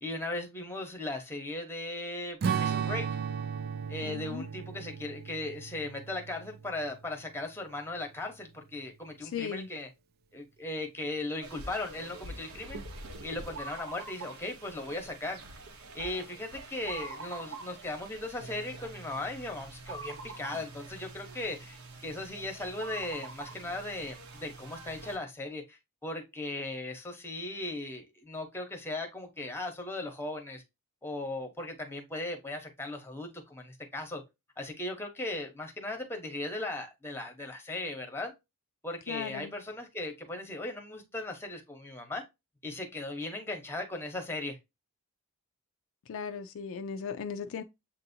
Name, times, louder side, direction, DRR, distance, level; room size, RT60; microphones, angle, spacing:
voice 1, 0.0-3.1 3.9-9.9 10.3-12.8 13.2-15.4 15.9-30.6 31.0-34.2 34.6-38.3 38.8-42.2 42.6-44.6, left 2 dB, 10° left, 0.9 m, -37 dB
Strum, 2.4-7.1, right 7 dB, 45° right, 0.4 m, -35 dB
voice 2, 4.0-4.4 9.3-9.7 39.1-39.5 46.1-47.6, left 6 dB, 65° left, 0.4 m, -37 dB
sound 1, 11.4-25.2, right 3 dB, 75° right, 0.9 m, -45 dB
7.3 x 2.7 x 2.6 m
head